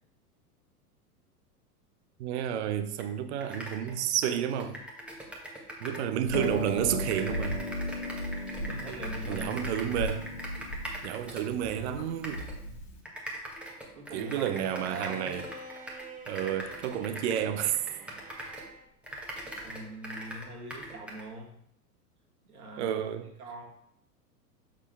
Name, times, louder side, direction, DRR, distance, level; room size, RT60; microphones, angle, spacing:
voice 1, 2.2-4.8 5.8-7.6 9.3-10.3 11.0-12.5 14.1-15.4 16.3-17.8 22.8-23.3, right 10 dB, 45° right, 0.8 m, -31 dB
sound 1, 3.0-3.1 3.4-6.1 6.3-11.8 12.2-12.6 13.0-18.7 19.0-21.3, right 1 dB, ahead, 1.4 m, -42 dB
Harp, 6.3-13.0, left 1 dB, 40° left, 1.7 m, -36 dB
voice 2, 8.6-9.9 13.9-15.5 19.6-21.5 22.5-23.0 23.4-23.6, right 2 dB, 70° right, 2.1 m, -43 dB
Bowed string instrument, 14.2-18.9, right 1 dB, 20° right, 1.1 m, -47 dB
7.5 x 6.5 x 3.4 m
figure-of-eight pair, 90°, 46 cm